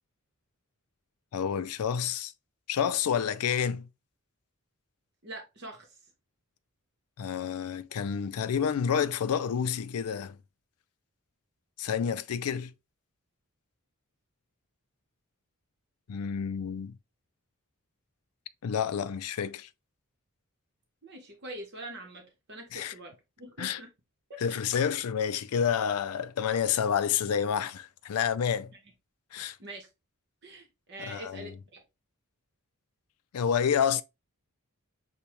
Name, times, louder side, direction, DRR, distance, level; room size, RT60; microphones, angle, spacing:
voice 1, 1.3-2.3 2.7-3.9 7.2-10.4 11.8-12.7 16.1-17.0 18.6-19.7 22.7-22.9 23.6-23.8 24.4-28.7 29.3-29.6 31.0-31.6 33.3-34.0, left 7 dB, 80° left, 0.4 m, -29 dB
voice 2, 5.2-5.9 21.0-23.9 24.3-24.4 28.7-28.8 29.6-29.9 30.4-31.8, right 1 dB, 50° right, 1.1 m, -44 dB
6.7 x 2.3 x 3.0 m
head